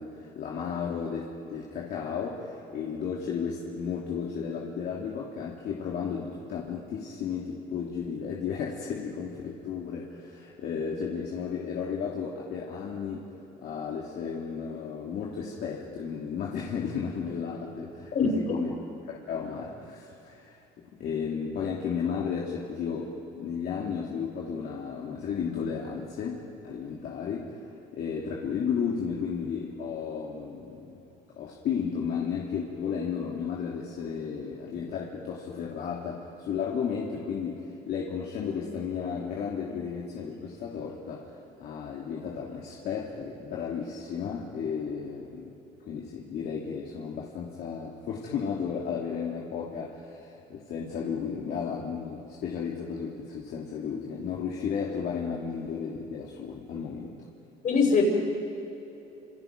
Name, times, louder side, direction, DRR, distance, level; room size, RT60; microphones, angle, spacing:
voice 1, 0.0-13.3 13.6-18.7 19.1-20.6 21.0-27.6 27.9-31.0 31.4-45.6 45.9-57.2, left 6 dB, 65° left, -3 dB, 3.0 m, -33 dB
voice 2, 57.6-58.0, left 5 dB, 50° left, 1 dB, 6.8 m, -22 dB
29.0 x 28.0 x 5.3 m, 3.0 s
cardioid pair, 110°, 17 cm